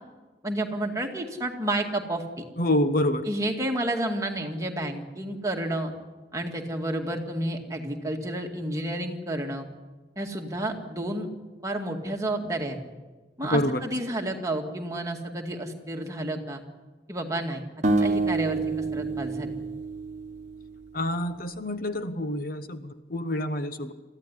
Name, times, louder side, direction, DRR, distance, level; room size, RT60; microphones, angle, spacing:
voice 1, 0.4-2.4 3.3-5.9 6.3-9.7 10.2-11.3 11.6-12.8 13.4-16.6 17.1-17.6 18.0-19.5, right 1 dB, 20° right, 2 dB, 2.1 m, -30 dB
voice 2, 2.6-3.2 13.5-13.8 20.9-23.9, left 1 dB, 50° left, 9 dB, 1.1 m, -27 dB
sound 1, 17.8-21.0, right 3 dB, 40° right, 1.3 m, -28 dB
23.0 x 15.0 x 9.9 m, 1.3 s
head